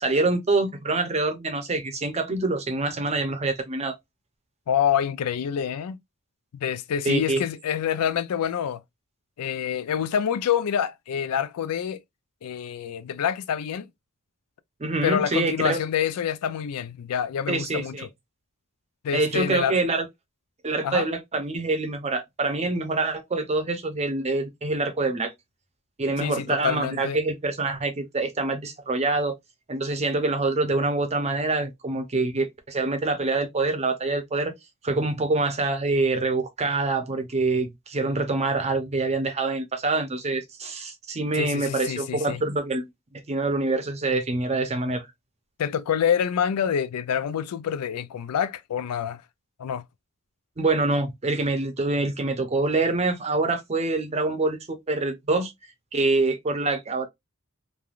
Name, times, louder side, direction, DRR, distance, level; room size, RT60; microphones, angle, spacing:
voice 1, 0.0-4.0 7.1-7.4 14.8-15.8 17.5-18.1 19.1-20.1 20.6-25.3 26.0-29.3 29.7-34.5 34.8-42.9 43.3-45.1 50.6-55.5 55.9-57.1, right 3 dB, 30° right, 0.6 m, -25 dB
voice 2, 4.7-6.0 6.5-8.8 9.4-12.0 12.4-13.9 15.0-18.1 19.0-19.8 20.8-21.1 26.2-27.2 41.4-42.4 45.6-49.2 49.6-49.8, left 8 dB, 90° left, 0.4 m, -27 dB
3.2 x 2.3 x 2.3 m
head